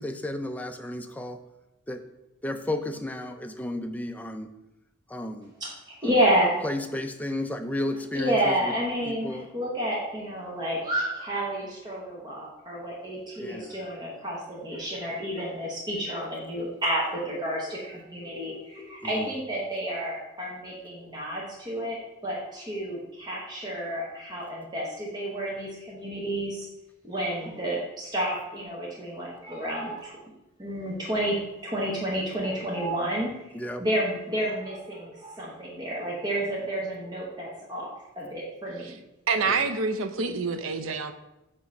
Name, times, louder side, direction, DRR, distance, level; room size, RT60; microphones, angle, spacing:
voice 1, 0.0-1.4 1.9-2.0 2.4-4.5 5.1-5.5 6.6-8.7 9.1-9.5 13.4-13.8 19.0-19.3 33.5-33.8 39.5-39.7, left 1 dB, 10° left, 6 dB, 0.4 m, -33 dB
voice 2, 5.6-6.6 8.1-26.7 27.0-30.2 30.6-31.4 31.6-33.3 33.8-39.0, right 1 dB, 20° right, -4 dB, 1.1 m, -30 dB
voice 3, 39.3-41.1, right 4 dB, 70° right, 9 dB, 0.6 m, -27 dB
7.3 x 3.0 x 5.3 m, 0.93 s
head